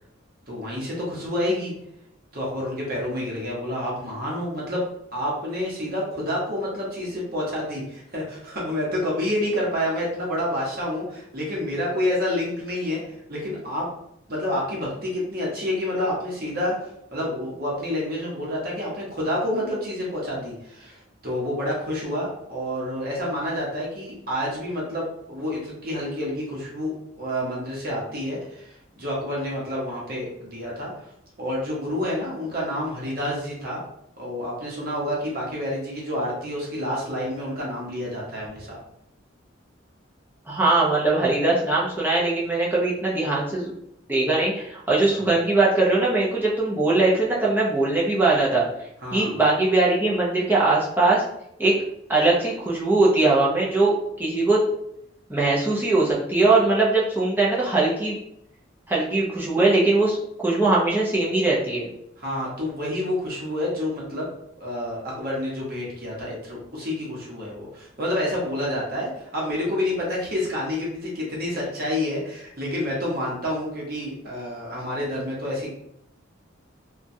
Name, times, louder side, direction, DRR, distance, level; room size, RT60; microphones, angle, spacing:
voice 1, 0.5-1.7 2.3-4.9 5.1-13.9 14.3-16.7 17.1-31.1 31.4-33.8 34.2-38.8 45.1-45.2 49.0-49.4 62.2-64.3 64.6-75.7, left 1 dB, 45° right, -4 dB, 0.9 m, -28 dB
voice 2, 40.5-43.7 44.1-48.7 49.1-51.2 51.6-51.7 52.1-54.6 55.3-58.2 58.9-61.9, right 2 dB, 10° right, -6 dB, 0.5 m, -21 dB
2.9 x 2.3 x 2.6 m, 0.76 s
head